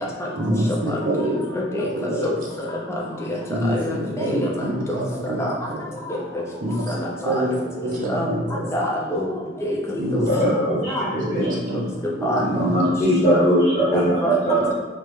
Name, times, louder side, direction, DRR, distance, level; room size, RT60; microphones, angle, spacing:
voice 1, 0.4-1.4 1.7-2.3 3.5-5.4 5.7-5.8 6.6-6.9 7.2-7.6 7.8-8.7 10.0-10.8 11.1-11.9 12.2-12.7, right 1 dB, 45° right, -3 dB, 0.5 m, -26 dB
voice 2, 0.9-2.7 3.3-3.4 3.6-4.0 4.3-4.5 4.9-5.0 5.4-5.5 6.9-7.3 8.1-8.3 8.7-9.3 9.6-10.4 10.9-11.1 11.3-11.5 12.2-12.4 13.2-13.5 13.9-14.4, left 1 dB, 15° left, -3 dB, 0.5 m, -26 dB
voice 3, 10.3-11.5 12.4-14.7, equal, 35° left, -8 dB, 0.8 m, -20 dB
3.2 x 2.0 x 3.1 m, 1.3 s
head